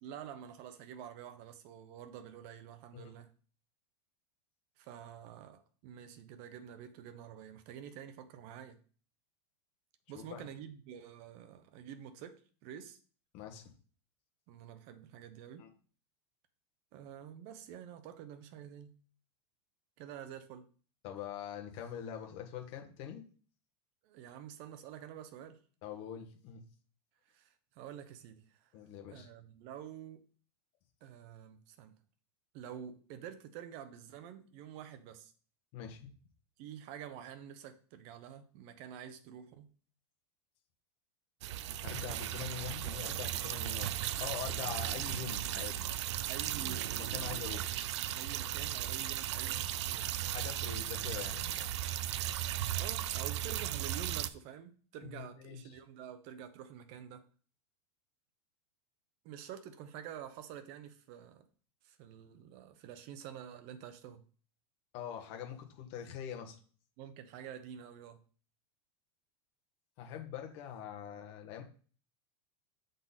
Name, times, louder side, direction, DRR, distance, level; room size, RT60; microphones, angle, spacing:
voice 1, 0.0-3.3 4.8-8.8 10.1-13.0 14.5-15.7 16.9-18.9 20.0-20.7 24.0-25.6 27.3-28.7 29.1-30.2 31.0-32.0 32.5-35.3 36.6-39.7 46.3-46.9 48.1-50.2 50.6-51.1 52.7-57.2 59.2-61.5 61.8-64.2 67.0-68.2, right 9 dB, 45° right, 0.9 m, -48 dB
voice 2, 13.3-13.7 15.6-15.7 21.0-23.2 25.8-26.6 28.7-29.3 35.7-36.1 41.8-45.9 46.9-47.7 50.3-51.7 55.1-55.6 64.9-66.6 70.0-71.6, left 9 dB, 45° left, 1.3 m, -44 dB
sound 1, 41.4-54.3, right 12 dB, 80° right, 0.5 m, -36 dB
7.4 x 4.0 x 4.1 m
supercardioid pair, 155°, 14 cm